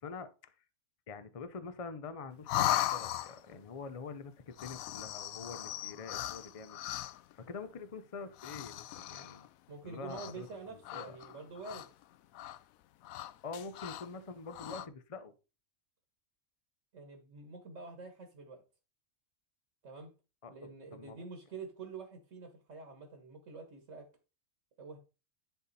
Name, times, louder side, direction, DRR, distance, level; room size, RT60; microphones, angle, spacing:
voice 1, 0.0-0.5 1.1-9.5 9.8-10.5 10.7-11.2 13.4-15.3 20.4-21.2, left 4 dB, 40° left, 11 dB, 0.5 m, -46 dB
sound 1, 2.5-3.6 4.5-7.3 8.3-9.5 10.1-10.5 10.8-12.0 12.3-12.6 13.0-14.1 14.5-14.9, left 13 dB, 80° left, 1.0 m, -37 dB
voice 2, 9.7-11.9 16.9-18.6 19.8-20.1 20.5-24.1 24.8-25.0, right 4 dB, 65° right, 4 dB, 1.7 m, -47 dB
10.5 x 4.1 x 4.1 m, 0.32 s
omnidirectional pair, 1.4 m